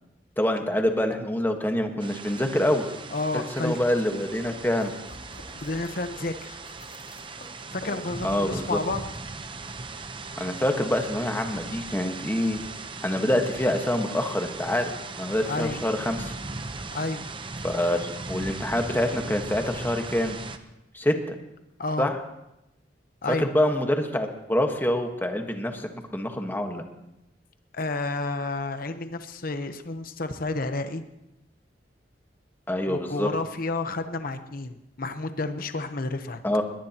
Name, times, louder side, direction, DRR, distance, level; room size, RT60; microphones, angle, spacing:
voice 1, 0.4-2.9 3.3-4.9 8.2-8.8 10.4-12.6 13.0-14.9 15.2-16.3 17.6-20.4 20.9-21.3 22.0-22.2 23.3-26.8 32.7-33.3 36.4-36.6, left 1 dB, 10° left, 4 dB, 1.4 m, -26 dB
sound 1, 2.0-20.6, right 3 dB, 30° right, 0.9 m, -38 dB
voice 2, 3.1-3.8 5.6-6.6 7.7-9.0 15.4-15.8 16.9-17.3 21.8-22.1 23.2-23.5 27.7-31.0 32.8-36.4, left 2 dB, 55° left, 8 dB, 0.9 m, -30 dB
sound 2, 3.4-8.5, left 1 dB, 85° left, 3.3 m, -49 dB
22.5 x 19.0 x 3.0 m, 0.89 s
head